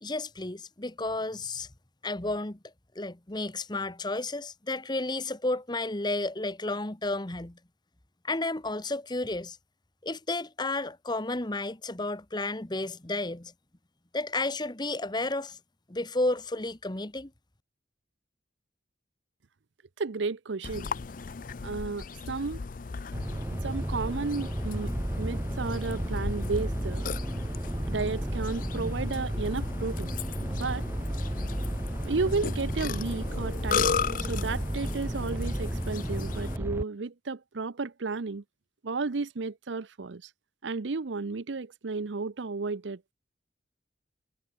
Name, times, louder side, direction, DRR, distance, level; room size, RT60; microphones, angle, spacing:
voice 1, 0.0-1.7 2.0-2.6 2.9-7.6 8.2-9.6 10.0-13.5 14.1-15.6 15.9-17.3, left 2 dB, 25° left, 1.3 m, -32 dB
voice 2, 20.0-20.9 21.6-22.6 23.6-24.9 25.2-27.1 27.8-30.1 30.4-30.8 32.0-38.4 38.8-40.3 40.6-43.1, right 4 dB, 80° right, 0.7 m, -33 dB
Burping eructation, 20.6-36.6, left 6 dB, 45° left, 0.5 m, -37 dB
sound 1, 23.1-36.8, right 1 dB, 10° right, 0.8 m, -32 dB
head